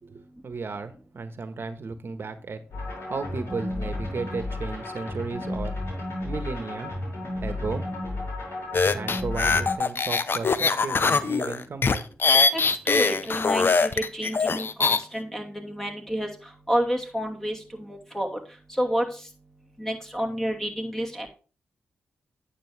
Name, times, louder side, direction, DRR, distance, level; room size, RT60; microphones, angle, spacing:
voice 1, 0.0-5.8 6.2-6.9 7.4-7.9 8.9-12.0, right 4 dB, 55° right, 10 dB, 1.3 m, -34 dB
sound 1, 2.7-9.8, left 2 dB, 65° left, 4.9 m, -33 dB
sound 2, 8.7-15.0, left 4 dB, 50° left, 0.7 m, -22 dB
voice 2, 12.5-16.3 16.7-18.4 18.7-19.1 19.8-21.3, equal, 10° left, 2 dB, 2.6 m, -29 dB
9.2 x 7.3 x 3.4 m, 0.36 s
supercardioid pair, 45°, 5 cm